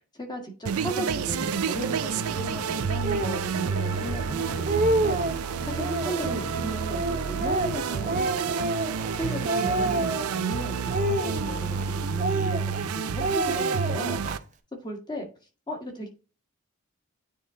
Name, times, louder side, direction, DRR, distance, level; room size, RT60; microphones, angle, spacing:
voice 1, 0.1-5.2 5.7-8.7 9.2-14.2 14.8-15.3 15.7-16.1, right 1 dB, 20° left, 1.7 m, -35 dB
sound 1, 0.6-14.4, right 6 dB, 90° right, 0.5 m, -29 dB
sound 2, 0.9-11.9, left 1 dB, 75° left, 3.5 m, -43 dB
Speech, 3.0-3.4 4.1-4.2 4.5-5.4 5.8-6.4 6.9-9.2 9.5-10.4 10.9-11.8 12.2-12.9 13.2-14.4, right 2 dB, 35° right, 0.7 m, -28 dB
9.3 x 3.8 x 3.8 m
head